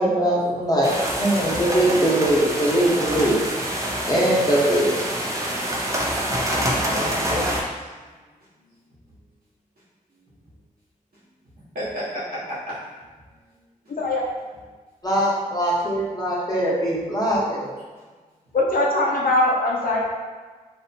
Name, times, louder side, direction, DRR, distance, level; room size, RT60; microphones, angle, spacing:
voice 1, 0.0-3.4 4.1-4.9 15.0-17.7, right 1 dB, 25° left, -6 dB, 1.0 m, -21 dB
sound 1, 0.8-7.6, right 1 dB, 20° right, 0.5 m, -26 dB
voice 2, 6.8-7.9 8.6-8.7 11.6-12.8 13.5-13.6, equal, 75° right, -9 dB, 1.1 m, -31 dB
voice 3, 18.5-20.0, left 2 dB, 70° left, -4 dB, 0.6 m, -21 dB
2.7 x 2.1 x 2.7 m, 1.3 s
cardioid pair, 40°, 15 cm